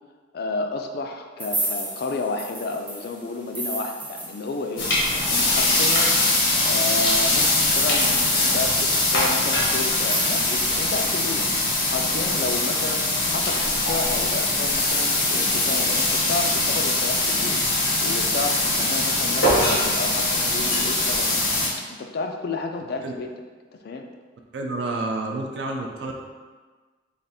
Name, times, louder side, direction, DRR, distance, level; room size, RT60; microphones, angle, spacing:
voice 1, 0.3-6.1 6.6-23.3 23.7-24.1, left 3 dB, 55° left, 4 dB, 0.3 m, -31 dB
sound 1, 1.4-4.9 5.2-5.3 5.6-10.8, right 2 dB, 10° right, 0.6 m, -34 dB
sound 2, 4.8-21.7, left 2 dB, 85° left, 1.1 m, -22 dB
voice 2, 24.5-26.1, right 2 dB, 65° right, 1 dB, 0.4 m, -29 dB
3.3 x 2.4 x 4.1 m, 1.4 s
head